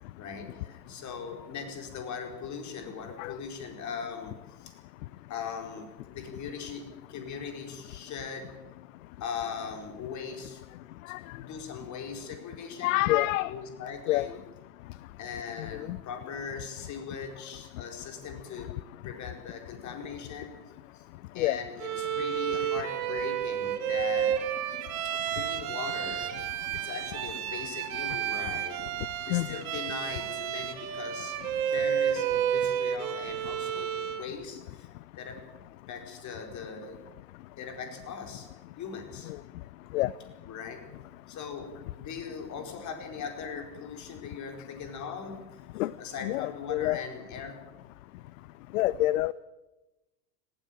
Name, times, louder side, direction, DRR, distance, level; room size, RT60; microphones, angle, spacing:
voice 1, 0.2-4.7 5.3-8.5 9.2-10.6 11.3-13.0 13.5-14.4 15.2-18.7 19.0-20.6 20.9-21.0 21.3-24.4 25.3-26.3 26.8-31.4 31.7-34.9 35.2-35.4 35.9-37.0 37.6-38.5 38.8-39.3 40.5-40.8 41.3-47.6, left 6 dB, 35° left, 5 dB, 4.7 m, -40 dB
voice 2, 12.8-13.5 14.1-14.3 15.9-16.0 21.4-21.6 29.3-29.6 39.9-40.1 45.8-45.9 46.2-47.0 48.7-49.3, left 17 dB, 50° left, 20 dB, 0.7 m, -26 dB
Bowed string instrument, 21.8-34.3, right 9 dB, 55° right, 2.5 m, -31 dB
19.0 x 16.0 x 9.0 m, 1.1 s
hypercardioid pair, 95°, 50 cm